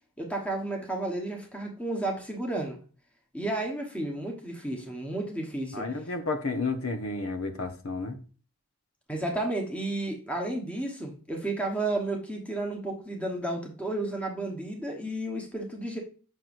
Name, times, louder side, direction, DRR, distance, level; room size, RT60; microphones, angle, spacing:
voice 1, 0.2-2.8 3.3-5.9 9.1-16.0, right 2 dB, 5° left, 1.1 m, -32 dB
voice 2, 5.7-8.2, left 3 dB, 80° left, 1.0 m, -31 dB
7.7 x 6.1 x 2.6 m
head